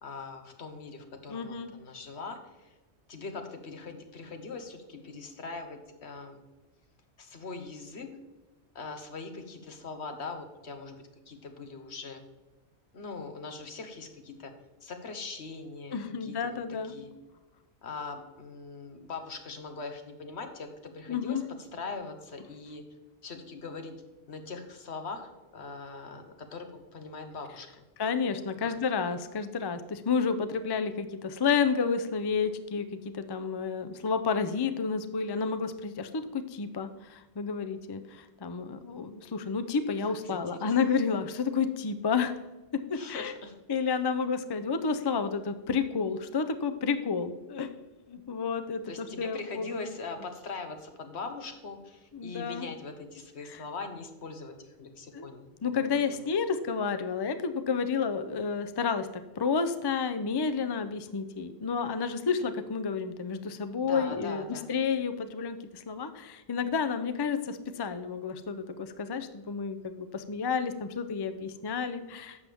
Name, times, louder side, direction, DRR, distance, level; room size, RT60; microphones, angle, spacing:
voice 1, 0.0-2.7 3.1-6.4 7.2-8.1 8.7-12.2 12.9-14.5 14.8-17.1 17.8-22.8 23.2-24.0 24.3-27.7 28.6-28.7 40.2-40.7 42.9-43.5 48.9-55.5 55.9-56.2 63.8-64.7, left 4 dB, 75° left, 6 dB, 1.4 m, -41 dB
voice 2, 1.3-1.7 15.9-17.0 21.1-21.4 28.0-42.3 42.7-43.3 43.7-47.7 48.1-49.9 52.1-52.7 53.5-53.6 55.1-55.3 55.6-59.1 59.4-72.4, left 5 dB, 30° left, 9 dB, 0.5 m, -30 dB
11.5 x 7.5 x 3.5 m, 1.1 s
omnidirectional pair, 1.1 m